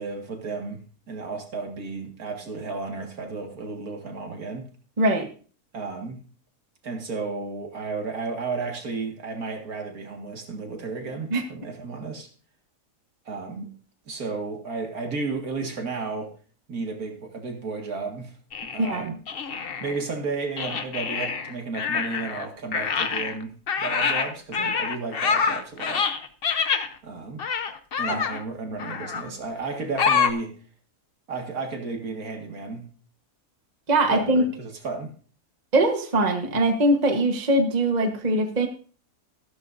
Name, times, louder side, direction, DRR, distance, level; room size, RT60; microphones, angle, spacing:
voice 1, 0.0-4.7 5.7-6.2 6.8-12.3 13.3-13.7 14.1-16.3 16.7-18.3 18.7-19.2 19.8-26.1 27.0-27.4 28.0-30.6 31.3-32.9 34.1-35.1, right 4 dB, 65° right, 3 dB, 2.3 m, -33 dB
voice 2, 5.0-5.3 11.3-11.4 18.8-19.1 28.1-28.2 33.9-34.4 35.7-38.7, right 1 dB, 30° right, 4 dB, 1.2 m, -22 dB
sound 1, 18.5-20.0 20.6-22.5 22.7-26.9 27.4-28.4 28.8-29.3 30.0-30.3, left 6 dB, 45° left, 0.8 m, -26 dB
14.0 x 13.0 x 2.6 m, 0.40 s
omnidirectional pair, 1.7 m